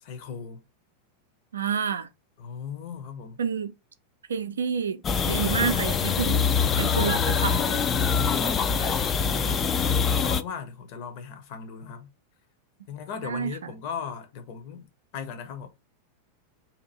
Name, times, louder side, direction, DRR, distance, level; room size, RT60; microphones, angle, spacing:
voice 1, 0.0-0.6 2.4-3.4 8.2-9.6 10.1-12.1 12.9-14.9 15.1-15.7, left 6 dB, 45° left, 0.8 m, -37 dB
voice 2, 1.5-2.1 3.4-3.7 4.3-6.5 6.7-7.8 13.2-13.7, right 7 dB, 70° right, 0.4 m, -29 dB
sound 1, 5.0-10.4, left 6 dB, 25° left, 0.3 m, -24 dB
2.8 x 2.5 x 3.9 m
figure-of-eight pair, 90°, 0 cm